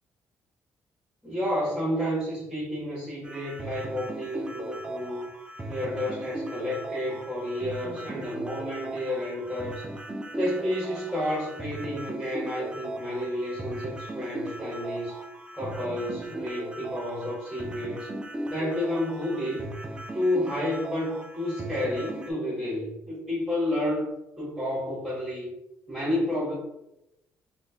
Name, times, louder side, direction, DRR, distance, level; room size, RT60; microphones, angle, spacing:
voice 1, 1.2-5.3 5.7-9.9 10.3-15.2 15.5-18.1 18.5-19.7 20.1-25.6 25.9-26.5, left 1 dB, 5° left, -9 dB, 1.5 m, -30 dB
sound 1, 3.2-22.3, right 1 dB, 15° right, 0.5 m, -38 dB
3.9 x 3.0 x 2.2 m, 0.90 s
cardioid pair, 80°, 6 cm